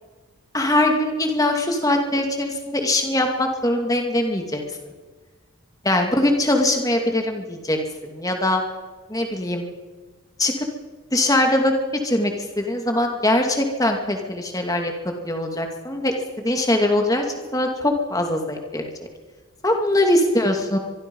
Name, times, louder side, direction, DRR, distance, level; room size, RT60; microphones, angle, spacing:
voice 1, 0.5-4.6 5.8-7.8 8.1-8.6 9.1-9.6 10.4-10.5 11.1-17.2 17.5-18.9 19.6-20.8, left 1 dB, 15° left, 3 dB, 2.4 m, -22 dB
25.0 x 22.5 x 5.5 m, 1.4 s
head